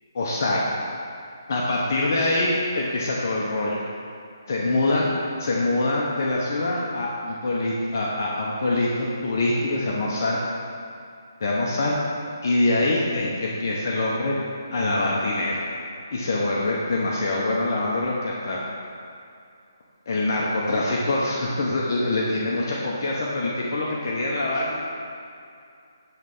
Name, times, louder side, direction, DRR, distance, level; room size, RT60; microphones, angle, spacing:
voice 1, 0.1-0.6 1.5-3.8 4.5-5.1 5.4-10.4 11.4-11.9 12.4-14.4 14.7-15.6 16.1-18.6 20.1-24.8, left 2 dB, 50° left, -4 dB, 0.8 m, -24 dB
8.1 x 3.3 x 5.4 m, 2.5 s
hypercardioid pair, 160°, 2 cm